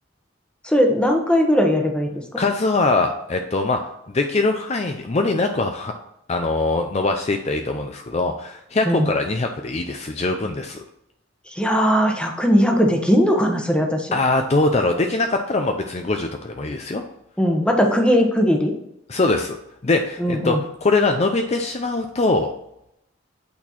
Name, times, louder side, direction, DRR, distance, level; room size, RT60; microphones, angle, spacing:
voice 1, 0.6-2.1 8.9-9.1 11.5-14.2 17.4-18.7 20.2-20.6, equal, 5° left, 2 dB, 1.0 m, -19 dB
voice 2, 2.4-3.8 4.1-5.9 6.3-10.8 14.1-17.0 19.1-19.6 19.8-22.5, left 3 dB, 35° left, 5 dB, 0.5 m, -22 dB
8.5 x 4.3 x 4.2 m, 0.81 s
head